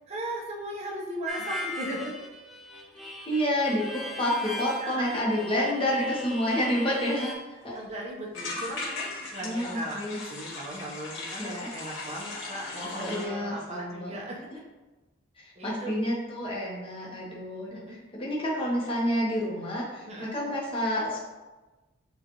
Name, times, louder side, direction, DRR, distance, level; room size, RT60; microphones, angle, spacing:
voice 1, 0.1-2.2 4.8-5.2 5.5-5.6 7.7-14.5 15.6-16.0 17.7-18.0 20.1-20.3, right 1 dB, 30° right, -3 dB, 0.7 m, -37 dB
Harmonica, 1.3-7.3, left 1 dB, ahead, 0.4 m, -39 dB
voice 2, 3.3-7.7 8.4-8.6 9.4-10.2 11.4-11.7 13.0-14.2 15.4-21.2, equal, 25° left, -5 dB, 0.9 m, -29 dB
sound 1, 6.9-7.0 7.3-7.4 7.6-7.9 8.3-13.3, left 3 dB, 70° left, 1.0 m, -38 dB
6.7 x 2.5 x 2.9 m, 1.2 s
head